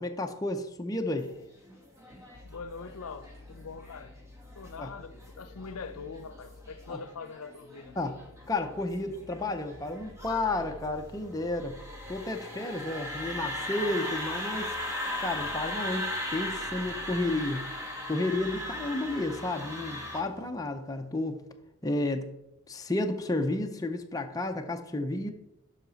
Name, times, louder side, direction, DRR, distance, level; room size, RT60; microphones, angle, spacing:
voice 1, 0.0-1.3 4.8-4.9 6.9-7.0 8.0-8.2 8.5-11.7 12.1-14.7 15.2-17.6 18.1-21.4 21.8-22.3 22.7-25.3, left 2 dB, 15° left, 0.6 m, -32 dB
sound 1, 1.3-20.2, left 1 dB, 15° right, 1.2 m, -38 dB
sound 2, 2.3-7.0 7.8-20.5, left 1 dB, 85° right, 1.6 m, -51 dB
voice 2, 2.4-4.1 4.5-8.0, left 4 dB, 85° left, 0.6 m, -43 dB
9.1 x 5.7 x 4.0 m
head